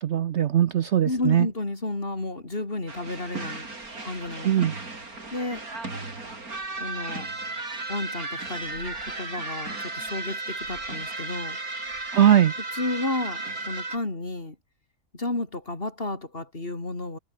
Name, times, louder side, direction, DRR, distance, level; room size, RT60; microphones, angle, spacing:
voice 1, 0.0-1.5 4.4-4.7 12.1-12.5, right 10 dB, 60° right, 0.9 m, -20 dB
voice 2, 1.0-3.7 4.0-4.5 5.3-5.6 6.8-7.3 7.9-11.6 12.7-14.6 15.1-17.2, left 2 dB, 40° left, 3.9 m, -32 dB
sound 1, 2.9-14.0, right 3 dB, 75° right, 5.1 m, -35 dB
omnidirectional pair, 1.6 m